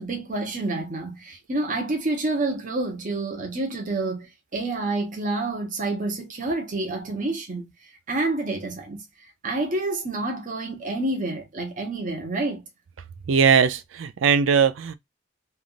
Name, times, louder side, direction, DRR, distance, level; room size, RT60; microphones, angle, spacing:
voice 1, 0.0-7.7 8.1-9.0 9.4-12.6, right 2 dB, 40° right, 1.0 m, -28 dB
voice 2, 13.3-14.9, right 6 dB, 75° right, 0.4 m, -19 dB
3.4 x 2.4 x 2.4 m
head